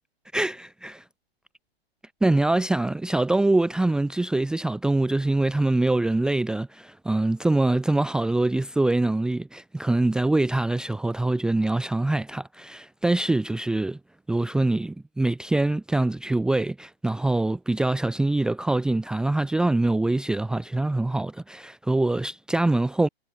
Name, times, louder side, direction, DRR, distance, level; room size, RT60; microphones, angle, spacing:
voice 1, 0.3-1.0 2.2-14.0 14.3-23.1, right 2 dB, ahead, 1.2 m, -24 dB
figure-of-eight pair, 135°, 32 cm